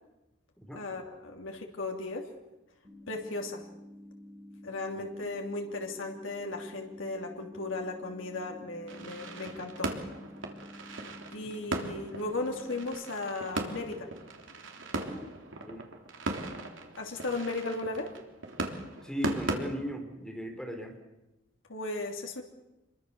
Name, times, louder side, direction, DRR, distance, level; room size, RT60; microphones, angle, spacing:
voice 1, 0.7-2.3 3.1-3.6 4.6-9.9 11.3-14.1 17.0-18.1 21.7-22.4, left 2 dB, 85° left, 1 dB, 3.1 m, -36 dB
sound 1, 2.8-12.8, left 1 dB, 25° right, 5.5 m, -50 dB
sound 2, 8.9-19.6, right 2 dB, 75° right, 3.3 m, -38 dB
voice 2, 19.0-21.0, equal, 5° left, 3 dB, 3.9 m, -37 dB
27.0 x 23.0 x 7.0 m, 0.98 s
head